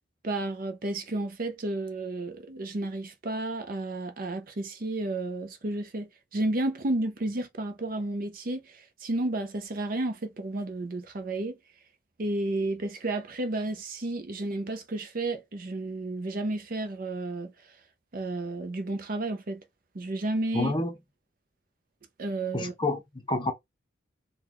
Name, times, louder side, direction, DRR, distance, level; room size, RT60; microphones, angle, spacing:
voice 1, 0.2-11.6 12.2-17.5 18.1-19.6 19.9-20.7 22.2-22.7, right 2 dB, 45° right, 0.6 m, -32 dB
voice 2, 20.5-20.9 22.5-23.5, left 2 dB, 25° left, 0.7 m, -28 dB
3.8 x 2.2 x 3.0 m
head